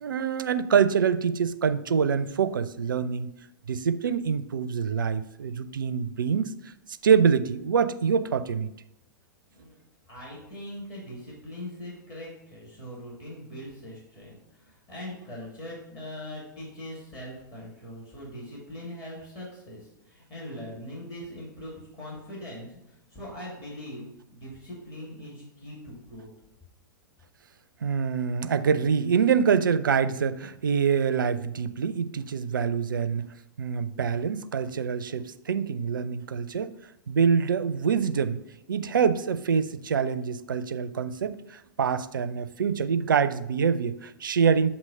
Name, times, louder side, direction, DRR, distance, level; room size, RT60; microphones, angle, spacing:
voice 1, 0.0-3.3 3.7-6.5 7.0-8.7 27.8-33.2 33.6-36.7 37.1-38.4 38.7-44.7, right 6 dB, 75° right, 13 dB, 0.4 m, -25 dB
voice 2, 10.1-26.3, left 1 dB, 30° left, -6 dB, 2.6 m, -41 dB
7.6 x 2.9 x 5.4 m, 0.83 s
figure-of-eight pair, 105°, 11 cm